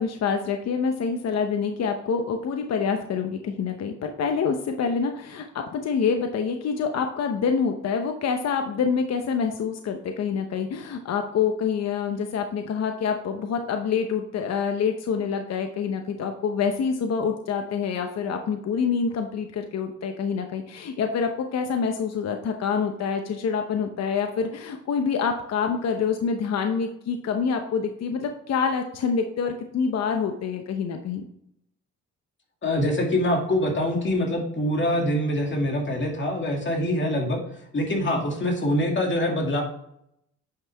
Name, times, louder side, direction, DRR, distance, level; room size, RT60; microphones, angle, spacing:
voice 1, 0.0-31.2, left 6 dB, 60° left, 5 dB, 0.9 m, -26 dB
voice 2, 32.6-37.4 37.7-39.6, left 1 dB, 40° left, 1 dB, 2.3 m, -24 dB
8.9 x 5.6 x 3.4 m, 0.75 s
cardioid pair, 90°, 30 cm